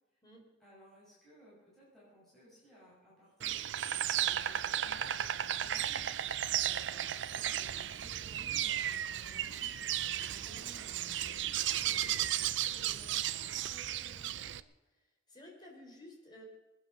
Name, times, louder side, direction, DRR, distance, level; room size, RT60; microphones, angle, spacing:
voice 1, 0.6-3.7 4.2-6.1 6.6-11.5 12.4-14.6, equal, ahead, -9 dB, 6.4 m, -58 dB
Insect, 3.4-14.6, right 11 dB, 75° right, 0.5 m, -34 dB
voice 2, 15.3-16.4, left 1 dB, 25° left, 0 dB, 4.0 m, -54 dB
21.0 x 9.7 x 6.6 m, 1.0 s
head